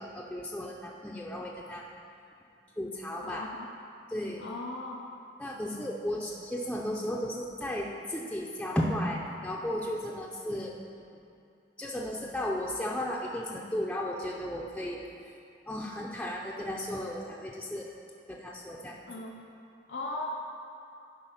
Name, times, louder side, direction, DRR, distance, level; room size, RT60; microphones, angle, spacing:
voice 1, 0.0-1.8 2.8-3.5 4.1-4.4 5.4-10.7 11.8-15.0 15.7-17.9 18.3-19.0, left 1 dB, 5° left, -2 dB, 0.5 m, -34 dB
voice 2, 3.2-3.7 4.4-5.0 19.1-19.4 19.9-20.3, left 2 dB, 75° left, 0 dB, 0.6 m, -38 dB
10.5 x 4.3 x 5.7 m, 2.6 s
head